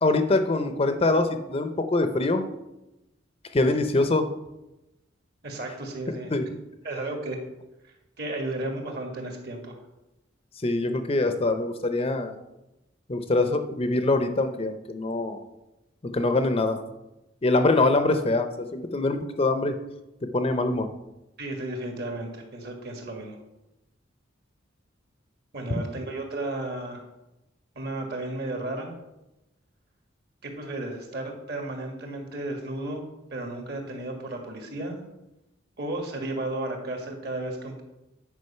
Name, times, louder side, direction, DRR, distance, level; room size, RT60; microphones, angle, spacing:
voice 1, 0.0-2.4 3.5-4.3 6.3-6.4 10.6-12.3 13.1-15.4 16.0-16.8 17.4-19.8 20.3-20.9, left 2 dB, 30° left, 8 dB, 0.6 m, -24 dB
voice 2, 5.4-6.3 6.8-7.4 7.8-9.8 21.4-23.4 25.5-27.0 27.8-29.0 30.4-33.0 33.3-35.0 35.8-37.8, right 2 dB, 55° right, 2 dB, 1.8 m, -33 dB
9.6 x 5.0 x 5.6 m, 0.95 s
head